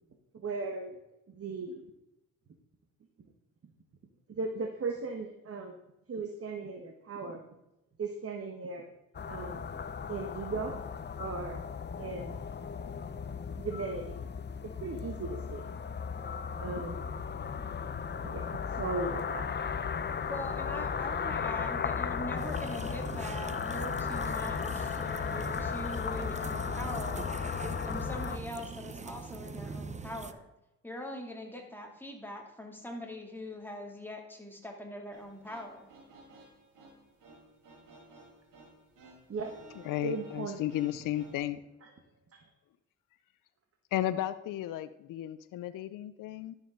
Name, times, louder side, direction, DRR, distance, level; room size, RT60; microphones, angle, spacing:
voice 1, 0.3-0.9 1.3-1.8 4.3-5.8 6.1-7.4 8.0-8.9 9.3-9.7 10.1-10.7 11.2-11.6 12.0-12.4 13.6-14.1 14.8-15.7 16.6-17.1 18.2-19.4 39.3-39.5 40.0-40.6 42.3-42.4, right 4 dB, 45° right, 4 dB, 1.4 m, -37 dB
sound 1, 9.1-28.4, left 6 dB, 30° left, 0.7 m, -36 dB
voice 2, 20.3-27.3 27.8-30.5 30.8-35.9, left 1 dB, 5° left, 1 dB, 2.7 m, -42 dB
sound 2, 22.4-30.3, right 4 dB, 20° right, 0.7 m, -42 dB
sound 3, 35.1-41.4, right 2 dB, 75° right, 4.1 m, -55 dB
voice 3, 39.8-41.6 43.9-46.5, left 13 dB, 70° left, 13 dB, 0.6 m, -34 dB
11.5 x 7.2 x 3.9 m, 0.91 s
supercardioid pair, 65°, 33 cm